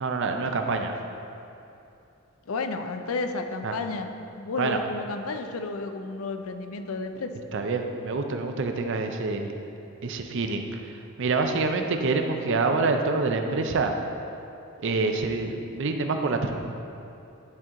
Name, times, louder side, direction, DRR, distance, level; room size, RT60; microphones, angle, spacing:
voice 1, 0.0-0.9 3.6-3.8 4.6-4.8 7.5-9.5 10.0-13.9 14.8-16.5, right 3 dB, 60° right, 5 dB, 0.5 m, -26 dB
voice 2, 2.5-4.1 4.4-7.3, left 3 dB, 75° left, 7 dB, 0.5 m, -32 dB
10.5 x 4.5 x 3.7 m, 2.7 s
head